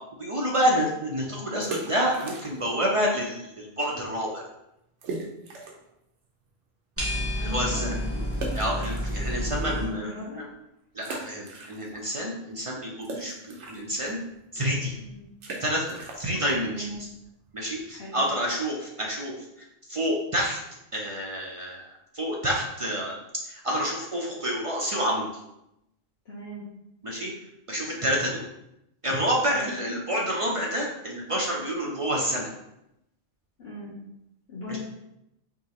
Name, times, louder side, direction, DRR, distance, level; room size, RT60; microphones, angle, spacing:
voice 1, 0.2-4.4 7.4-7.9 8.5-10.1 10.9-13.3 13.7-14.2 14.5-14.9 15.6-16.8 17.5-19.5 19.9-20.6 20.9-23.2 23.5-25.3 27.0-27.3 27.7-28.4 29.0-32.5 34.7-34.8, equal, 45° right, -3 dB, 0.4 m, -28 dB
sound 1, 1.5-2.9 3.1-3.2 3.8-3.9 4.2-4.3 5.0-5.9 6.4-6.5 8.3-9.7 10.2-10.3 11.0-12.2 12.4-17.9, right 3 dB, 75° right, 1.1 m, -39 dB
sound 2, 7.0-9.8, equal, 10° right, 1.2 m, -30 dB
voice 2, 7.3-8.2 9.6-10.4 14.9-15.2 16.6-17.0 17.9-18.2 26.2-26.6 29.5-29.7 33.6-34.0 34.5-34.8, left 1 dB, 60° left, -8 dB, 1.2 m, -39 dB
4.7 x 2.8 x 2.9 m, 0.85 s
omnidirectional pair, 1.2 m